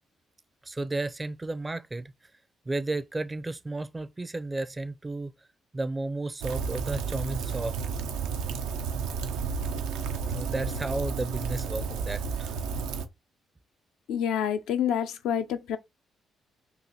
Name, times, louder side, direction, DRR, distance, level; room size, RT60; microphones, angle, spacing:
voice 1, 0.6-2.1 2.7-5.3 5.7-7.7 10.3-12.6, right 2 dB, 25° right, 0.5 m, -33 dB
Rain, 6.4-13.1, right 5 dB, 75° right, 0.5 m, -32 dB
voice 2, 14.1-15.8, left 9 dB, 70° left, 0.4 m, -28 dB
2.8 x 2.8 x 3.9 m
hypercardioid pair, 45°, 0 cm